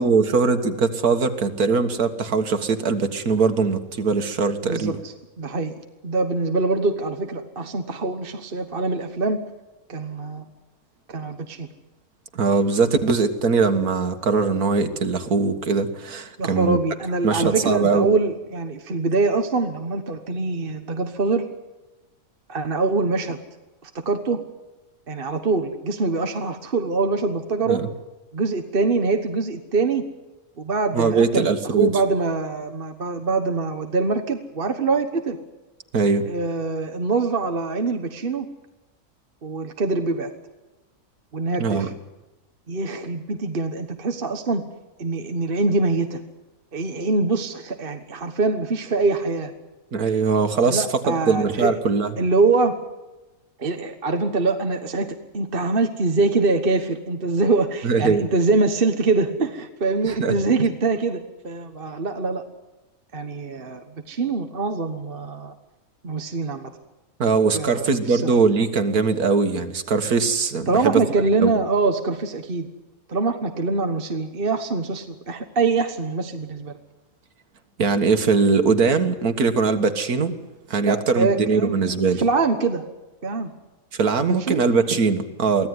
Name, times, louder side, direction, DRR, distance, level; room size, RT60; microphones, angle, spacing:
voice 1, 0.0-5.0 12.3-16.8 17.2-18.1 27.7-27.8 30.9-31.9 35.9-36.3 41.6-41.9 49.9-52.1 57.8-58.2 60.0-60.4 67.2-71.0 71.4-71.5 77.8-80.3 80.7-82.2 83.9-85.7, right 4 dB, 85° right, 8 dB, 2.1 m, -21 dB
voice 2, 4.6-9.4 9.9-10.4 11.1-11.7 16.4-21.5 22.5-23.4 23.8-24.4 25.1-27.8 28.3-30.0 30.6-35.4 36.3-38.5 39.4-40.3 41.3-41.9 42.7-44.6 45.0-46.2 46.7-49.5 50.6-51.8 52.2-52.8 53.6-62.4 63.1-65.5 66.0-66.7 67.5-68.4 70.7-72.7 73.1-76.8 80.8-81.7 82.2-82.8 83.2-83.5 84.2-84.6, right 3 dB, 40° right, 7 dB, 1.4 m, -24 dB
24.0 x 16.0 x 9.7 m, 1.1 s
omnidirectional pair, 1.5 m